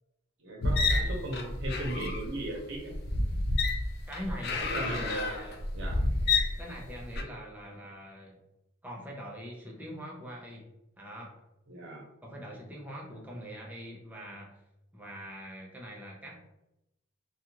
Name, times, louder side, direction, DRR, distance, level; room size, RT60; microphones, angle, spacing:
voice 1, 0.4-2.9 4.7-5.4 5.7-6.0 11.7-12.0, right 1 dB, 60° right, -1 dB, 0.8 m, -37 dB
sound 1, 0.6-7.2, left 2 dB, 55° left, 0.4 m, -29 dB
voice 2, 4.1-5.6 6.6-8.4 8.8-10.7 11.0-11.3 12.2-14.6 14.9-16.5, equal, 10° right, -2 dB, 0.5 m, -43 dB
2.4 x 2.3 x 2.9 m, 0.89 s
head